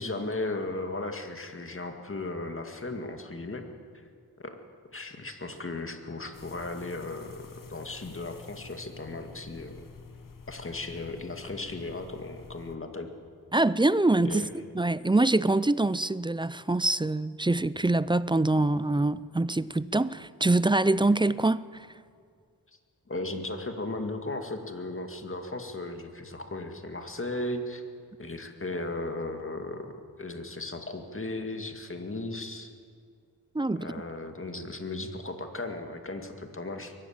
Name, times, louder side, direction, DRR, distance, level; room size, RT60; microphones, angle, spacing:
voice 1, 0.0-3.7 4.4-4.6 4.9-9.8 10.5-13.1 14.2-14.5 23.1-27.8 28.2-29.9 30.2-32.7 33.8-36.9, left 2 dB, 35° left, 2.1 m, -36 dB
sound 1, 6.3-12.8, left 4 dB, 55° left, 1.2 m, -49 dB
voice 2, 13.5-21.9 33.5-33.9, right 2 dB, 15° right, 0.4 m, -25 dB
22.5 x 13.0 x 8.7 m
wide cardioid pair, 85°, 38 cm